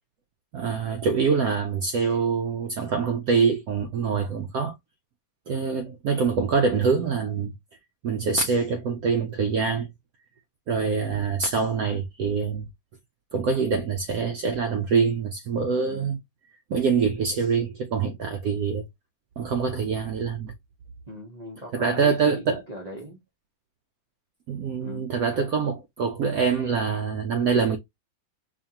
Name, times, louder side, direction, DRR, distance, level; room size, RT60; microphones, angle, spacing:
voice 1, 0.5-4.7 5.5-7.5 8.0-9.9 10.7-12.7 13.3-16.2 16.7-18.9 19.4-20.5 21.7-22.6 24.5-27.8, right 5 dB, 80° right, 0.8 m, -25 dB
voice 2, 21.1-23.2 24.8-25.1, equal, 50° right, 0.4 m, -39 dB
5.0 x 2.5 x 2.8 m
omnidirectional pair, 2.1 m